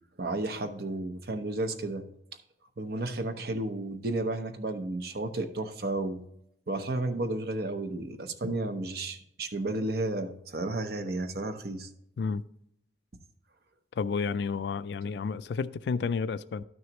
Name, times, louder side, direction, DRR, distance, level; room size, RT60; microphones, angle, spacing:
voice 1, 0.2-2.0 2.8-6.2 6.7-11.9, right 2 dB, 60° right, 0.8 m, -32 dB
voice 2, 14.0-16.6, left 5 dB, 70° left, 0.3 m, -31 dB
12.0 x 6.3 x 3.0 m
head